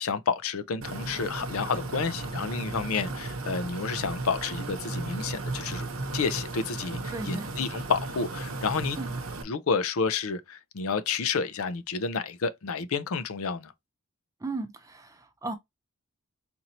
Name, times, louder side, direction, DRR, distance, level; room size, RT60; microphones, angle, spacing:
voice 1, 0.0-5.9 6.1-9.0 9.5-13.7, left 5 dB, 75° left, 0.5 m, -30 dB
sound 1, 0.8-9.4, right 2 dB, 65° right, 0.8 m, -35 dB
voice 2, 7.1-7.5 9.0-9.1 14.4-15.5, right 3 dB, 15° right, 0.5 m, -35 dB
4.2 x 2.7 x 2.9 m
head